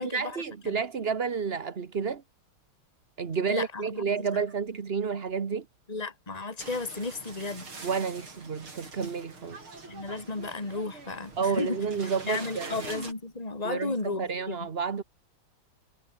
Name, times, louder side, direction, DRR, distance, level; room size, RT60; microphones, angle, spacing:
voice 1, 0.0-2.2 3.2-5.6 7.8-9.7 11.4-12.9 13.6-15.0, right 6 dB, 35° right, 1.2 m, -30 dB
voice 2, 3.5-4.4 5.9-7.7 9.9-11.8 12.3-14.6, left 3 dB, 15° left, 3.2 m, -34 dB
sound 1, 6.6-13.1, right 3 dB, 75° right, 6.4 m, -44 dB
omnidirectional pair, 2.3 m